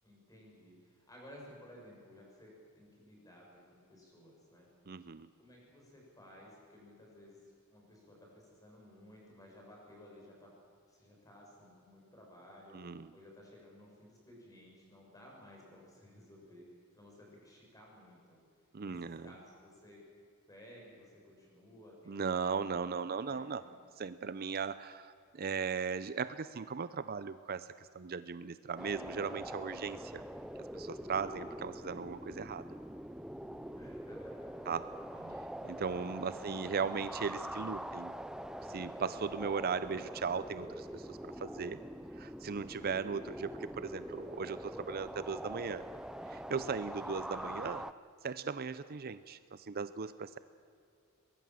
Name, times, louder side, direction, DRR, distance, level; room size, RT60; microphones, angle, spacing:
voice 1, 0.0-4.7 5.4-10.5 10.9-16.7 16.9-18.4 18.8-20.0 20.5-22.6 23.0-23.7 33.8-34.7 35.1-35.4 36.2-36.7, equal, 15° left, -2 dB, 7.1 m, -56 dB
voice 2, 4.9-5.3 12.7-13.1 18.7-19.3 22.1-23.6 24.0-30.2 30.7-32.7 34.7-34.9 35.7-38.1 38.7-41.8 42.2-45.8 46.3-47.8 48.2-50.4, right 5 dB, 45° right, 14 dB, 0.6 m, -37 dB
sound 1, 28.8-47.9, equal, 5° right, 0.5 m, -44 dB
23.0 x 20.5 x 7.6 m, 2.3 s
head